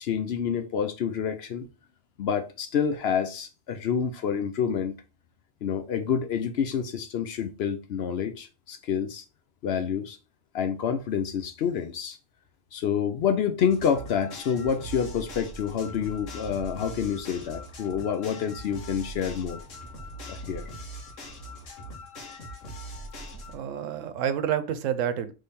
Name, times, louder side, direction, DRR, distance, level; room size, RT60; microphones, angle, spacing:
voice 1, 0.0-1.7 2.2-5.0 5.6-9.2 9.6-10.2 10.5-12.2 12.7-19.6 20.3-20.6, left 7 dB, 65° left, 0.8 m, -28 dB
sound 1, 13.7-23.5, equal, 80° left, 1.4 m, -41 dB
voice 2, 23.3-25.3, right 9 dB, 90° right, 1.0 m, -29 dB
3.5 x 3.3 x 4.2 m
omnidirectional pair, 1.3 m